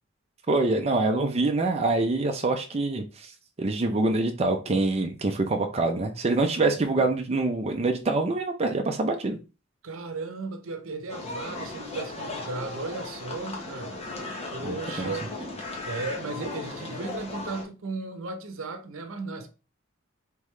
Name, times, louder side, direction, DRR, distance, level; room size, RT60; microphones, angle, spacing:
voice 1, 0.5-9.4 14.6-15.1, right 2 dB, 30° right, 0.5 m, -25 dB
voice 2, 9.8-15.3 15.8-19.5, right 3 dB, 85° right, 0.7 m, -36 dB
sound 1, 11.1-17.6, left 2 dB, 30° left, 1.0 m, -36 dB
3.7 x 3.4 x 3.1 m
head